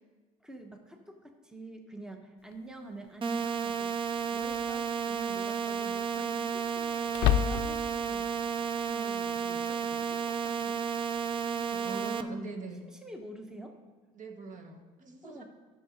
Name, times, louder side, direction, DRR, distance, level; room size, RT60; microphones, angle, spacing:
voice 1, 0.4-4.0 4.3-8.3 8.8-10.8 12.9-13.8 15.2-15.4, right 1 dB, 5° right, 4 dB, 1.0 m, -47 dB
sound 1, 2.5-2.6 4.4-4.8 5.2-5.3 7.1-8.0, left 12 dB, 75° left, 0.4 m, -28 dB
sound 2, 3.2-12.2, right 7 dB, 30° right, 0.5 m, -32 dB
voice 2, 11.2-12.9 14.1-15.4, right 3 dB, 50° right, 4 dB, 1.2 m, -43 dB
10.5 x 6.6 x 5.1 m, 1.3 s
supercardioid pair, 80°, 17 cm